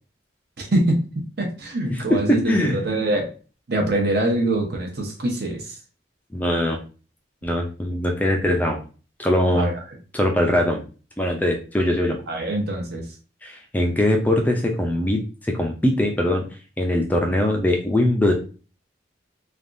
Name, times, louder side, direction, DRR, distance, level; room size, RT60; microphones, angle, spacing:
voice 1, 0.6-3.3 3.7-5.7 9.5-9.7 12.3-13.0, right 1 dB, 55° right, 1 dB, 0.8 m, -24 dB
voice 2, 1.9-2.8 6.3-6.8 7.4-8.8 9.2-9.7 10.1-10.8 11.2-12.2 13.4-16.4 16.8-18.3, left 1 dB, 10° left, 1 dB, 0.4 m, -21 dB
3.4 x 2.3 x 2.5 m, 0.36 s
head